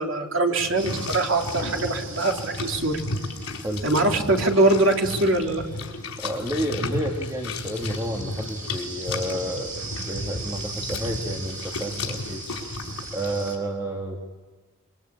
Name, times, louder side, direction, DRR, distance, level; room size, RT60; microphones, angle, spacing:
voice 1, 0.0-3.0 3.8-5.6, right 2 dB, 60° right, 2 dB, 3.5 m, -22 dB
sound 1, 0.6-13.6, left 2 dB, 85° left, 4.7 m, -34 dB
sound 2, 0.8-13.6, right 4 dB, 35° right, 5.7 m, -40 dB
voice 2, 6.2-12.7 13.1-14.4, equal, 15° right, 1 dB, 2.0 m, -30 dB
26.5 x 23.5 x 8.8 m, 1.3 s
head